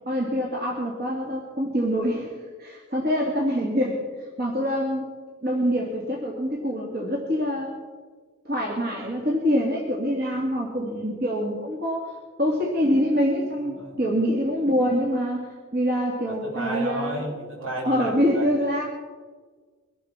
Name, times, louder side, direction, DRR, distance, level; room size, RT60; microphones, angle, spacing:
voice 1, 0.1-4.0 4.4-5.1 5.4-7.7 8.4-17.3 17.8-18.8, equal, 45° right, -3 dB, 2.8 m, -25 dB
voice 2, 13.6-14.0 16.3-18.5, right 2 dB, 80° right, -2 dB, 5.8 m, -33 dB
23.5 x 8.4 x 6.3 m, 1.5 s
head